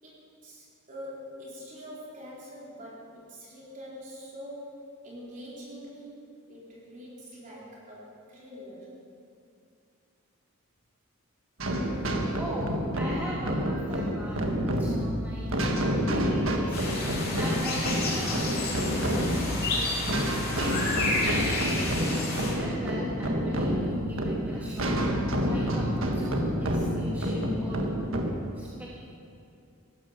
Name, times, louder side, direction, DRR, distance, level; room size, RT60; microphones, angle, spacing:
voice 1, 0.0-6.2 6.5-8.9, equal, 35° right, -6 dB, 4.0 m, -44 dB
sound 1, 11.6-28.3, equal, 65° right, 1.5 m, -28 dB
voice 2, 12.4-15.6 15.9-16.8 17.3-21.5 22.0-25.0 25.4-27.8 28.5-29.0, equal, 10° right, -7 dB, 1.5 m, -39 dB
sound 2, 16.7-22.5, left 2 dB, 45° left, 3.1 m, -31 dB
16.0 x 12.5 x 5.9 m, 2.5 s
head